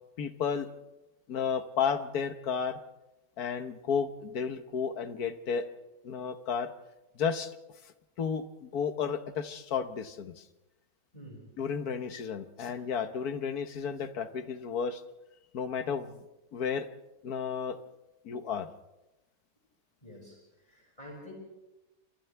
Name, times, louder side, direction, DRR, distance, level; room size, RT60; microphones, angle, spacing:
voice 1, 0.2-0.7 1.3-2.8 3.4-5.7 6.0-6.7 7.1-7.5 8.2-10.5 11.6-15.0 15.5-16.2 16.5-16.9 17.2-17.8 18.2-18.7, left 6 dB, 90° left, 10 dB, 1.6 m, -32 dB
voice 2, 11.1-11.5 20.0-21.3, equal, 25° left, -1 dB, 6.1 m, -48 dB
29.5 x 26.5 x 3.4 m, 1.0 s
omnidirectional pair, 1.6 m